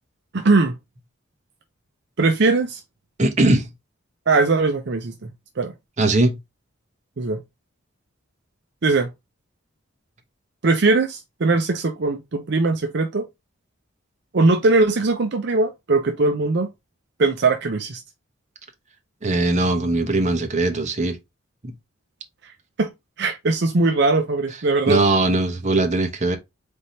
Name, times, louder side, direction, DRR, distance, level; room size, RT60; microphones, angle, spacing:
voice 1, 0.3-0.7 2.2-2.8 4.3-5.3 5.6-5.7 7.2-7.4 8.8-9.1 10.6-13.3 14.3-16.7 17.2-18.0 22.8-22.9 23.2-25.0, right 3 dB, 55° right, 0.6 m, -20 dB
voice 2, 3.2-3.7 6.0-6.4 19.2-21.2 21.6-21.7 24.9-26.4, right 2 dB, 35° right, 0.9 m, -20 dB
4.3 x 3.4 x 2.7 m
head